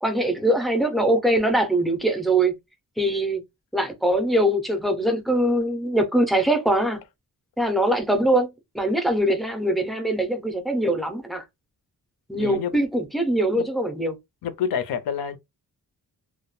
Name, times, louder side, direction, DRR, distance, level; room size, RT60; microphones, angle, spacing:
voice 1, 0.0-2.5 3.0-3.4 3.7-7.0 7.6-11.4 12.3-14.1, right 1 dB, ahead, 0.4 m, -22 dB
voice 2, 12.4-12.7 13.5-13.7 14.4-15.4, left 7 dB, 85° left, 0.6 m, -27 dB
2.2 x 2.1 x 3.0 m
wide cardioid pair, 155°, 36 cm